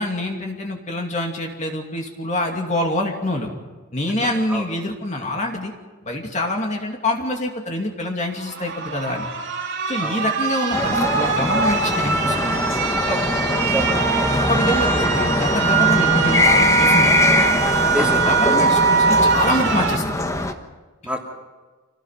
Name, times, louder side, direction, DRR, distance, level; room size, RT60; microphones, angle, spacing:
voice 1, 0.0-3.5 3.9-5.7 6.0-9.3 9.9-12.6 13.1-13.2 14.3-17.2 18.0-20.2, left 1 dB, 30° left, 2 dB, 2.5 m, -25 dB
voice 2, 4.3-4.6 10.0-10.3 13.6-14.3 17.9-18.6 21.0-21.2, equal, 5° right, 0 dB, 2.8 m, -28 dB
sound 1, 8.4-20.0, right 5 dB, 55° right, 2.7 m, -22 dB
sound 2, 10.7-20.5, left 1 dB, 15° left, 1.2 m, -21 dB
27.0 x 18.5 x 5.8 m, 1.3 s
head